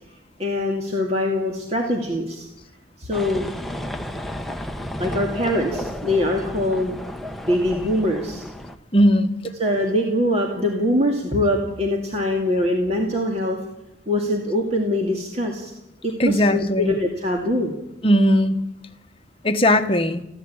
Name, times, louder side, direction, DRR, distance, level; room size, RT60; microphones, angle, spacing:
voice 1, 0.4-2.5 3.0-3.5 5.0-6.9 7.5-8.5 9.6-13.6 14.1-15.7 16.0-17.7, left 1 dB, 35° right, 1 dB, 2.4 m, -23 dB
sound 1, 3.1-8.8, left 1 dB, ahead, 0.9 m, -32 dB
voice 2, 8.9-9.3 16.2-17.0 18.0-18.6 19.4-20.2, equal, 30° left, 7 dB, 1.2 m, -18 dB
21.5 x 16.0 x 8.7 m, 0.96 s
head